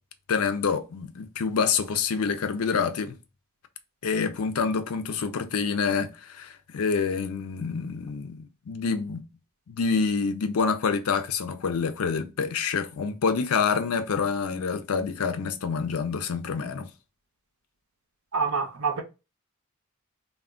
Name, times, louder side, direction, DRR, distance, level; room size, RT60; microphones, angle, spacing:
voice 1, 0.3-3.1 4.0-9.3 9.7-16.9, left 5 dB, 80° left, 0.4 m, -27 dB
voice 2, 18.3-19.0, right 5 dB, 75° right, 0.7 m, -26 dB
2.3 x 2.1 x 3.5 m
head